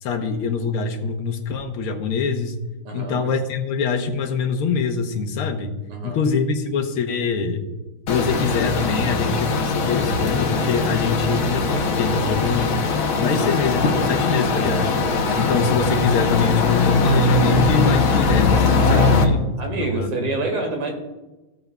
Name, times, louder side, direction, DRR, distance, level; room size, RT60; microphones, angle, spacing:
voice 1, 0.0-2.6 2.9-5.7 6.0-7.6 8.1-12.7 13.2-15.0 15.4-20.3, left 5 dB, 90° left, 6 dB, 1.9 m, -24 dB
voice 2, 2.8-3.2 5.9-6.2 18.8-19.3 19.6-20.9, right 2 dB, 85° right, 2 dB, 2.8 m, -27 dB
sound 1, 8.1-19.2, left 3 dB, 70° left, 1.8 m, -20 dB
15.5 x 7.8 x 2.3 m, 1.1 s
omnidirectional pair, 2.3 m